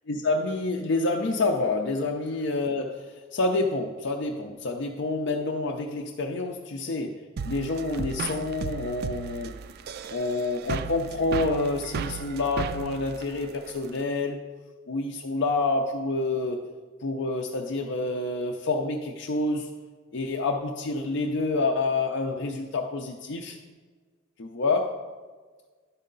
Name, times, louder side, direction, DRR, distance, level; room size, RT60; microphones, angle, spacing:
voice 1, 0.1-9.5 10.1-14.4 14.9-16.6 17.0-19.7 20.1-23.6 24.4-25.0, left 3 dB, 65° left, 1 dB, 0.6 m, -28 dB
sound 1, 7.4-14.0, right 6 dB, 50° right, 0.4 m, -35 dB
11.5 x 5.4 x 3.9 m, 1.4 s
head